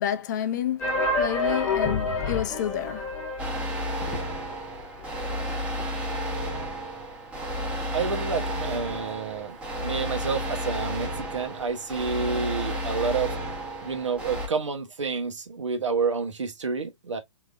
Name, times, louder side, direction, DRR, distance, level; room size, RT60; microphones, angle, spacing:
voice 1, 0.0-3.1, left 10 dB, 35° left, 0.5 m, -29 dB
sound 1, 0.8-4.5 4.8-4.9 5.1-5.2 5.8-5.9, left 2 dB, 10° left, 1.1 m, -28 dB
sound 2, 3.4-14.5, equal, 5° right, 0.9 m, -32 dB
voice 2, 7.9-13.3 13.8-17.2, right 5 dB, 70° right, 1.1 m, -29 dB
3.8 x 2.9 x 2.5 m
figure-of-eight pair, 130°, 16 cm